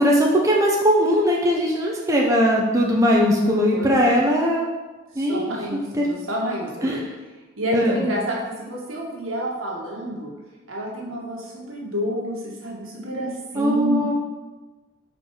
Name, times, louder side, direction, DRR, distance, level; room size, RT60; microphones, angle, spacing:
voice 1, 0.0-4.6 5.2-5.5 6.0-6.1 6.8-7.0 7.7-7.9 13.6-14.1, equal, 15° right, -2 dB, 0.6 m, -19 dB
voice 2, 3.7-4.2 5.1-7.0 7.6-10.3 10.7-14.0, equal, 75° right, -3 dB, 1.7 m, -29 dB
5.1 x 4.6 x 4.8 m, 1.2 s
head